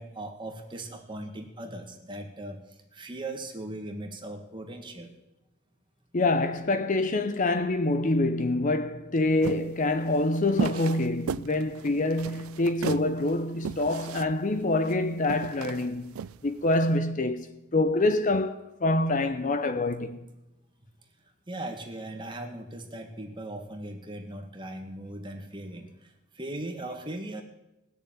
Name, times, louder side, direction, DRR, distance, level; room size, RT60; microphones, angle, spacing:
voice 1, 0.0-5.1 21.5-27.4, right 1 dB, 20° right, 1.7 m, -39 dB
voice 2, 6.1-16.1 16.4-17.5 17.7-20.2, left 2 dB, 35° left, 0.6 m, -26 dB
sound 1, 9.4-16.9, right 6 dB, 85° right, 0.4 m, -36 dB
18.5 x 6.7 x 9.0 m
head